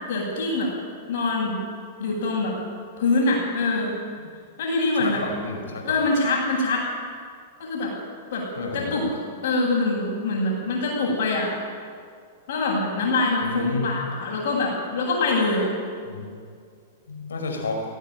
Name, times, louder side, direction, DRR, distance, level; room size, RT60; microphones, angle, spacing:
voice 1, 0.1-0.7 1.1-1.7 2.0-2.5 3.0-4.0 4.6-5.2 5.8-6.9 7.6-7.9 8.3-8.5 8.7-11.6 12.5-15.7, left 2 dB, 65° left, -8 dB, 7.9 m, -24 dB
voice 2, 5.0-6.0 8.6-9.0 13.4-14.0 16.1-16.3 17.1-17.8, left 3 dB, 85° left, 2 dB, 5.2 m, -30 dB
18.5 x 17.0 x 9.2 m, 2.2 s
hypercardioid pair, 110°, 0 cm